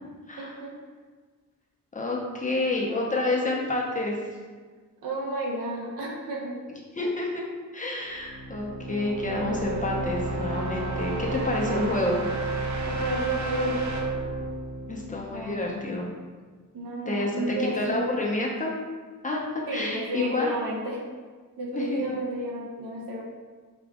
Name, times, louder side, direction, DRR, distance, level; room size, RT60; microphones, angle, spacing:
voice 1, 0.4-0.8 2.4-3.0 5.0-6.6 7.0-7.1 11.6-12.0 12.8-14.0 15.3-16.1 16.7-18.2 19.7-21.0 21.6-23.2, right 1 dB, 80° right, -2 dB, 1.0 m, -32 dB
voice 2, 1.9-4.2 7.0-7.5 7.7-12.2 14.9-16.1 17.1-17.3 17.7-18.7 19.2-20.5 21.7-22.2, left 2 dB, 25° left, -2 dB, 0.7 m, -29 dB
sound 1, 8.1-15.9, right 2 dB, 60° right, 0.5 m, -31 dB
5.0 x 2.4 x 3.5 m, 1.5 s
wide cardioid pair, 115°, 33 cm